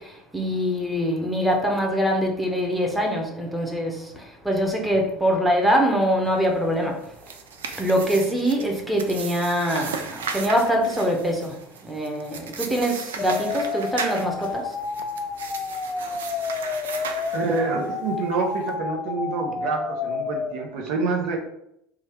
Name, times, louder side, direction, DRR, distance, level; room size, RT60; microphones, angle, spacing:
voice 1, 0.3-3.9 4.5-6.9 7.8-10.0 10.3-11.4 11.9-14.6, equal, 5° right, 1 dB, 0.9 m, -23 dB
sound 1, 7.0-17.9, right 5 dB, 85° right, 0.4 m, -36 dB
sound 2, 13.2-20.5, left 4 dB, 25° left, 0.4 m, -30 dB
voice 2, 17.3-21.4, right 4 dB, 65° right, 1 dB, 0.8 m, -27 dB
3.1 x 2.4 x 4.3 m, 0.77 s
hypercardioid pair, 80°, 0 cm